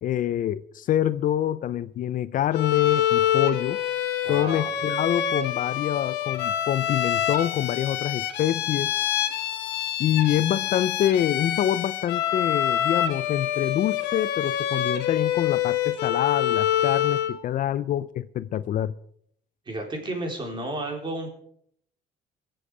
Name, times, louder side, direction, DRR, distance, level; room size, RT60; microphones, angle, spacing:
voice 1, 0.0-3.8 4.3-8.9 10.0-18.9, left 11 dB, 55° left, 0.5 m, -26 dB
Bowed string instrument, 2.5-17.4, left 10 dB, 85° left, 1.4 m, -26 dB
voice 2, 4.2-4.7 10.3-10.4 19.7-21.3, right 2 dB, 30° right, 4.1 m, -32 dB
23.0 x 7.8 x 4.9 m
cardioid pair, 110°, 17 cm